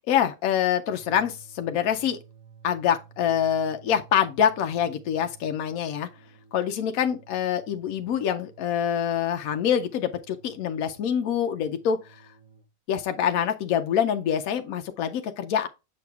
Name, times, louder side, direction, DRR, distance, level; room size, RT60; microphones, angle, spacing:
voice 1, 0.1-2.2 2.6-6.1 6.5-12.2 12.9-15.7, left 9 dB, 70° left, 0.8 m, -25 dB
sound 1, 0.8-12.7, right 6 dB, 55° right, 0.8 m, -53 dB
6.9 x 6.5 x 2.3 m
omnidirectional pair, 1.9 m